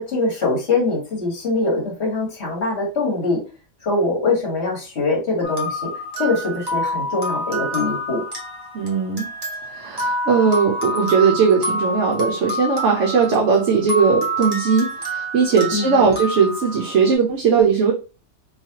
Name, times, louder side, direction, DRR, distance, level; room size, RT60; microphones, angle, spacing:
voice 1, 0.0-3.4 3.8-5.9 6.2-8.2 15.7-16.1, left 3 dB, 45° left, -1 dB, 1.6 m, -23 dB
sound 1, 5.4-17.1, equal, 20° right, 0.9 m, -27 dB
voice 2, 8.7-9.3 9.7-17.9, right 5 dB, 60° right, 0 dB, 0.9 m, -18 dB
3.2 x 3.1 x 2.8 m, 0.32 s
omnidirectional pair, 1.6 m